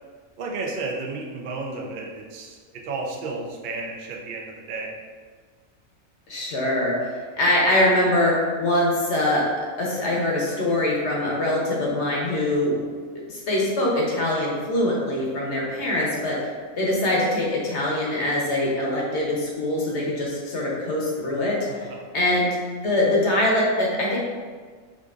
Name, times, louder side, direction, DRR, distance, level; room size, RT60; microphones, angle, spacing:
voice 1, 0.4-2.6 2.8-4.9 21.7-22.0, right 3 dB, 70° right, -1 dB, 0.4 m, -32 dB
voice 2, 6.3-9.5 9.8-12.7 13.3-16.5 16.8-21.6 22.1-22.6 22.8-24.2, left 1 dB, 60° left, -3 dB, 1.0 m, -23 dB
4.8 x 2.5 x 2.4 m, 1.6 s
omnidirectional pair, 1.5 m